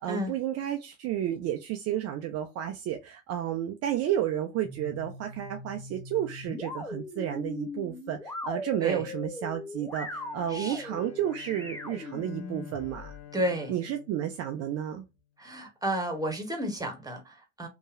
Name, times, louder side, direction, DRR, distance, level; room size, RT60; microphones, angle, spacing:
voice 1, 0.0-13.2 13.7-15.0, right 11 dB, 45° right, 0.5 m, -32 dB
sound 1, 4.6-13.2, left 2 dB, 10° left, 0.6 m, -40 dB
Bowed string instrument, 9.9-15.3, left 11 dB, 55° left, 0.8 m, -50 dB
voice 2, 10.5-10.8 13.3-13.7 15.4-17.7, right 1 dB, 10° right, 1.1 m, -32 dB
2.8 x 2.3 x 2.4 m
figure-of-eight pair, 55°, 34 cm